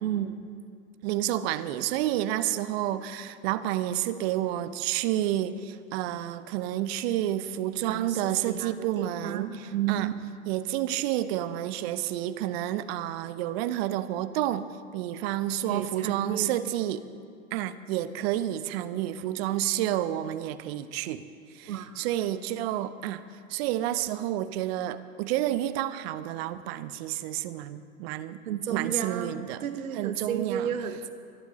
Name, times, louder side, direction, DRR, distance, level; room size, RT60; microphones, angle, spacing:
voice 1, 0.0-0.4 7.8-10.1 15.7-16.5 21.7-22.1 28.4-29.4 29.6-31.1, right 10 dB, 70° right, 11 dB, 1.0 m, -32 dB
voice 2, 1.0-10.1 10.5-14.7 14.9-17.1 17.5-21.2 21.5-23.2 23.5-28.4 28.7-29.6 29.9-30.7, right 13 dB, 45° right, 14 dB, 0.7 m, -30 dB
23.5 x 11.5 x 3.1 m, 2.3 s
hypercardioid pair, 100°, 42 cm